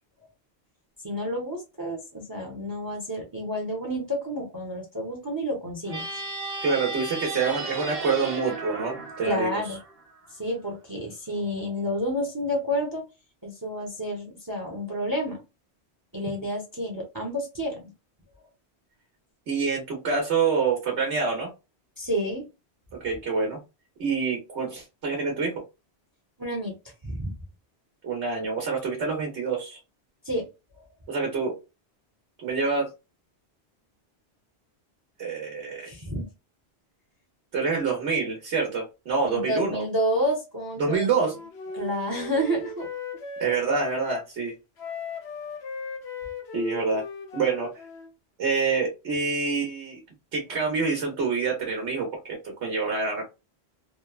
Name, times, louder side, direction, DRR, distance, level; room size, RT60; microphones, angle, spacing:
voice 1, 1.0-6.0 9.2-9.8 10.3-13.0 13.4-15.4 16.1-17.9 22.0-22.4 26.4-26.7 27.0-27.3 30.2-30.5 30.8-30.9 35.8-36.3 39.2-41.1 41.7-42.9, equal, 20° right, 0 dB, 0.7 m, -29 dB
sound 1, 5.9-10.3, right 3 dB, 65° right, 0.9 m, -35 dB
voice 2, 6.6-9.6 19.5-21.5 23.0-23.6 24.0-25.5 28.0-29.8 31.1-31.5 32.4-32.9 35.2-35.9 37.5-39.8 40.8-41.3 43.4-44.5 46.5-47.0 47.3-47.7 48.4-50.0 50.3-53.2, right 4 dB, 85° right, 0 dB, 1.2 m, -26 dB
Wind instrument woodwind instrument, 41.1-44.3 44.8-48.1, left 5 dB, 75° left, 1.0 m, -37 dB
3.0 x 2.1 x 2.3 m, 0.26 s
omnidirectional pair, 1.1 m